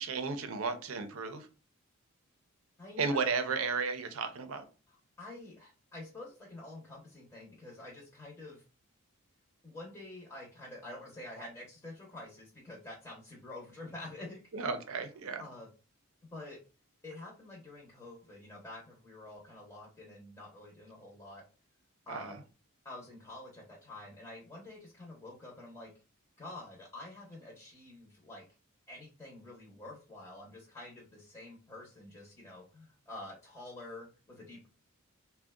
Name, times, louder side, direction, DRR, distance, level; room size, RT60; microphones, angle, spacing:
voice 1, 0.0-1.5 3.0-4.7 14.5-15.5 22.1-22.4, right 4 dB, 70° right, 8 dB, 0.5 m, -34 dB
voice 2, 2.8-3.3 5.2-8.6 9.6-14.4 15.4-15.7 16.3-16.6 17.0-21.4 22.1-22.4 22.8-25.9 26.4-28.4 28.9-34.7, left 2 dB, 15° left, -4 dB, 0.7 m, -48 dB
3.6 x 2.1 x 2.2 m, 0.33 s
head